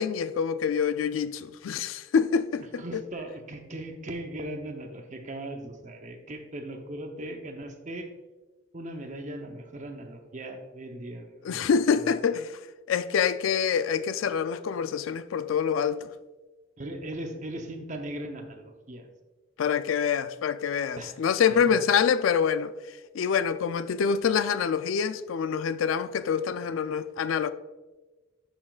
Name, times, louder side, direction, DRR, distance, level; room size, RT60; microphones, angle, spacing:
voice 1, 0.0-3.0 11.4-12.6 12.9-16.1 19.6-22.7 23.1-27.5, left 7 dB, 90° left, 0.4 m, -26 dB
voice 2, 2.8-8.1 8.7-11.6 12.0-12.1 16.8-19.1 20.9-21.1, right 1 dB, 40° right, 0.8 m, -38 dB
11.0 x 6.0 x 2.4 m
head